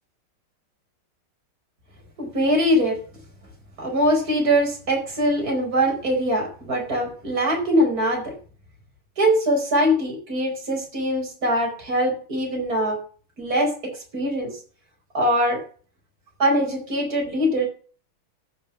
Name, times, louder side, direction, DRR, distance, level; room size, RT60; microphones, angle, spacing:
voice 1, 2.2-3.0 3.8-8.3 9.2-13.0 13.4-14.5 15.1-15.6 16.4-17.7, equal, 45° right, 1 dB, 5.4 m, -22 dB
14.0 x 6.7 x 7.1 m, 0.42 s
omnidirectional pair, 2.2 m